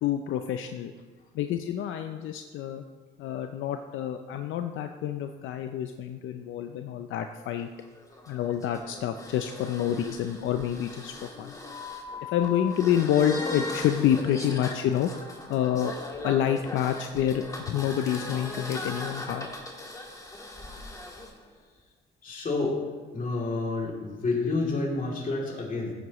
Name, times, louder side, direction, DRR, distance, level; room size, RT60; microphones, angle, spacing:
voice 1, 0.0-0.9 1.3-2.8 3.2-7.7 8.3-11.5 12.3-15.1 15.5-15.9 16.2-19.5, left 10 dB, 80° left, 7 dB, 0.5 m, -28 dB
sound 1, 7.6-21.3, left 2 dB, 15° left, 1.7 m, -39 dB
voice 2, 22.2-22.8 23.1-25.9, left 3 dB, 45° left, -3 dB, 2.9 m, -29 dB
15.0 x 7.8 x 3.1 m, 1.4 s
cardioid pair, 90°, 20 cm